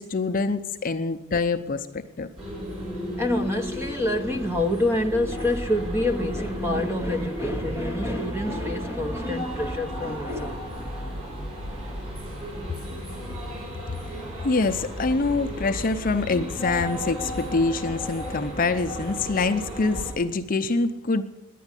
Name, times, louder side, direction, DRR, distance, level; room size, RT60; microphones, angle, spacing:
voice 1, 0.0-2.3 14.4-21.2, left 3 dB, 40° left, 0.6 m, -25 dB
sound 1, 2.4-20.1, equal, 30° right, 6.0 m, -34 dB
voice 2, 3.2-11.4, left 1 dB, 10° right, 0.8 m, -27 dB
10.5 x 9.2 x 9.7 m
head